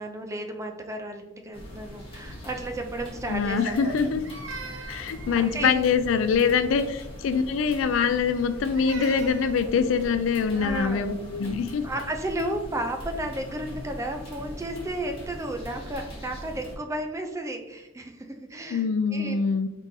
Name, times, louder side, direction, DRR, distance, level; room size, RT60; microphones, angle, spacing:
voice 1, 0.0-3.9 4.5-4.9 5.2-5.9 6.5-6.9 10.5-11.1 11.8-19.4, right 1 dB, 15° right, 5 dB, 0.4 m, -33 dB
sound 1, 1.5-16.7, equal, 30° left, 0.9 m, -41 dB
voice 2, 3.3-4.2 4.9-11.8 18.7-19.7, left 6 dB, 80° left, 11 dB, 0.4 m, -24 dB
Crying sobbing, 3.5-6.0 8.2-9.7, right 3 dB, 75° right, 0.6 m, -41 dB
3.8 x 3.7 x 2.6 m, 1.0 s
head